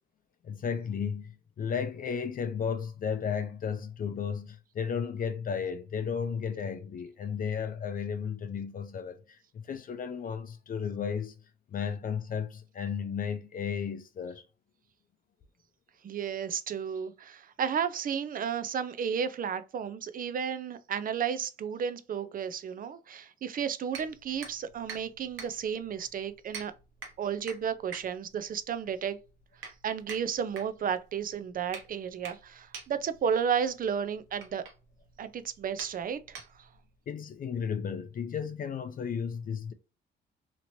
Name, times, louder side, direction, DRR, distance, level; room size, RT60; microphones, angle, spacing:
voice 1, 0.4-11.4 11.7-14.4 37.1-39.7, left 7 dB, 45° left, 0.5 m, -34 dB
voice 2, 16.0-26.7 27.2-29.2 29.8-34.6 35.2-36.4, right 7 dB, 45° right, 0.4 m, -33 dB
sound 1, 23.9-36.9, right 5 dB, 80° right, 1.0 m, -47 dB
2.9 x 2.9 x 2.6 m
cardioid pair, 90°, 20 cm